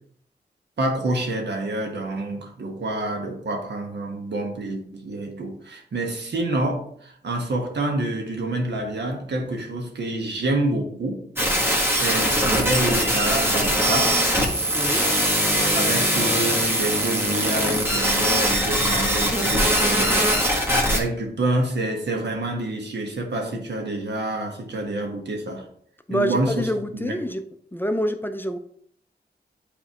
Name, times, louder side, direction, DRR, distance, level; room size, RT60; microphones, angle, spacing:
voice 1, 0.8-11.2 12.0-14.2 15.7-20.2 20.9-25.6 26.1-27.1, right 2 dB, 80° right, 2 dB, 1.3 m, -27 dB
sound 1, 11.4-21.0, equal, 15° right, 1.4 m, -21 dB
voice 2, 14.7-15.1 26.1-27.4 27.7-28.6, equal, 10° left, 8 dB, 0.5 m, -26 dB
8.3 x 4.2 x 2.9 m, 0.62 s
wide cardioid pair, 80°, 18 cm